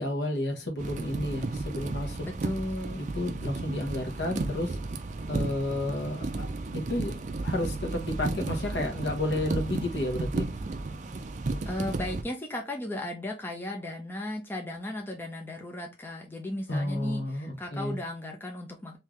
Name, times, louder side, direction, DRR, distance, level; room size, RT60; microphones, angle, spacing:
voice 1, 0.0-2.3 2.9-4.8 5.3-6.5 6.7-7.1 7.4-10.5 16.7-18.0, left 1 dB, 70° left, 1.1 m, -31 dB
sound 1, 0.8-12.2, right 2 dB, 40° right, 0.4 m, -33 dB
voice 2, 2.2-3.0 11.7-19.0, left 1 dB, 10° left, 0.5 m, -36 dB
3.7 x 2.8 x 3.1 m
head